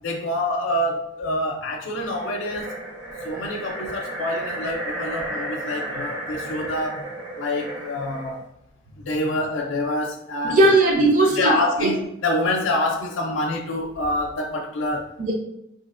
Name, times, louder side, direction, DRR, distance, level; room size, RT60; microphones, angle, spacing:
voice 1, 0.0-2.7 3.2-7.0 7.4-8.4 9.0-10.6 11.4-15.1, left 1 dB, 85° left, 0 dB, 0.5 m, -26 dB
sound 1, 2.0-8.4, right 1 dB, 75° right, 1.0 m, -33 dB
voice 2, 10.4-11.9 15.2-15.3, right 2 dB, 45° right, -1 dB, 0.7 m, -18 dB
4.0 x 2.7 x 2.4 m, 0.81 s
head